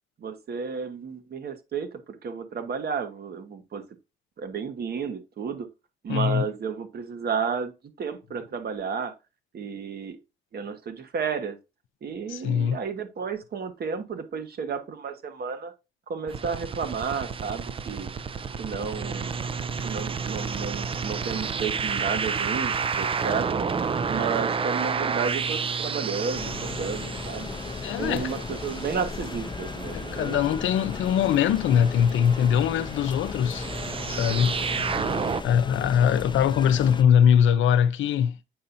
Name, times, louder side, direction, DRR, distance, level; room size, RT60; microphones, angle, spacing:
voice 1, 0.2-3.8 4.4-5.7 6.0-7.7 8.0-9.1 9.5-10.2 10.5-11.6 12.0-15.7 16.1-18.1 18.6-19.4 19.8-23.7 24.1-26.5 26.8-27.5 28.0-30.5, right 6 dB, 50° right, 1.2 m, -32 dB
voice 2, 6.1-6.5 12.3-12.8 27.8-28.3 29.9-33.7 34.1-34.6 35.4-38.4, left 8 dB, 75° left, 0.6 m, -22 dB
sound 1, 16.3-35.4, right 5 dB, 25° right, 0.4 m, -31 dB
sound 2, 26.3-37.0, left 4 dB, 25° left, 0.6 m, -36 dB
7.7 x 5.5 x 2.6 m
cardioid pair, 90°, 20 cm